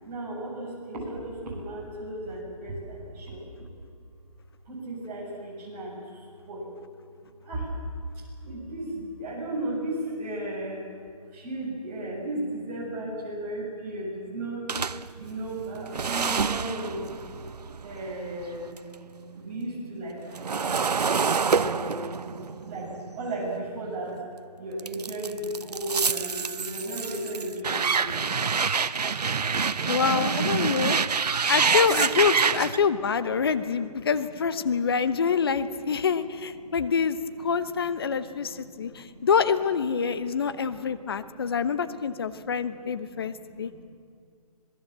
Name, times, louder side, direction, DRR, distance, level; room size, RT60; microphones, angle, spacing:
voice 1, 0.0-3.7 4.6-6.7 7.2-7.8 8.1-10.9 11.3-14.7 15.1-17.1 17.8-18.7 19.3-20.8 21.4-24.3 24.6-28.5 29.6-31.6 31.9-39.4 40.0-43.9, right 1 dB, 20° right, -6 dB, 7.2 m, -37 dB
sound 1, 14.7-18.9 19.3-24.2 24.8-32.8, right 5 dB, 85° right, 0.9 m, -27 dB
voice 2, 29.9-31.0 31.5-43.8, left 6 dB, 40° left, 13 dB, 0.9 m, -26 dB
26.5 x 19.5 x 7.5 m, 2.3 s
hypercardioid pair, 165°, 20 cm